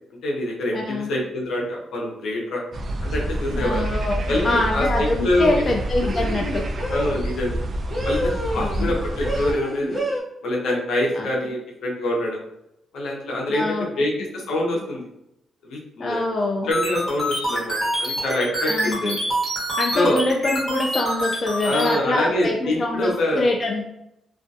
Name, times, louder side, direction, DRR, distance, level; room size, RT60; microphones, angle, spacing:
voice 1, 0.2-2.6 3.0-3.8 4.3-5.6 6.9-7.6 8.0-10.0 10.4-12.4 12.9-15.0 15.6-16.2 16.6-19.2 19.9-20.2 21.6-23.5, left 1 dB, 80° left, -2 dB, 0.7 m, -25 dB
voice 2, 0.7-1.2 3.5-6.6 8.6-8.9 11.1-11.3 13.5-13.8 16.0-16.7 18.7-19.2 19.8-23.8, left 2 dB, 40° left, 0 dB, 0.3 m, -24 dB
sound 1, 2.7-9.5, right 1 dB, 45° right, 0.3 m, -27 dB
sound 2, 4.2-4.5 6.0-7.2 7.9-8.9 9.2-10.2, equal, 5° left, 0.8 m, -28 dB
sound 3, 16.7-21.9, equal, 20° left, 1.2 m, -26 dB
2.4 x 2.2 x 2.6 m, 0.81 s
cardioid pair, 120°, 0 cm